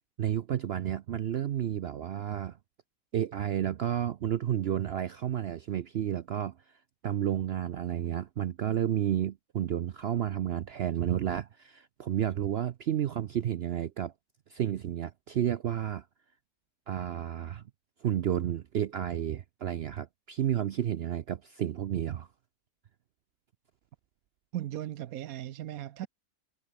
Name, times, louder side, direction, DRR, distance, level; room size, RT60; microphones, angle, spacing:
voice 1, 0.2-2.6 3.1-6.5 7.0-14.1 14.5-16.1 16.9-17.6 18.0-22.3, right 10 dB, 60° right, 0.7 m, -31 dB
voice 2, 24.5-26.1, right 12 dB, 75° right, 1.1 m, -37 dB
omnidirectional pair, 1.5 m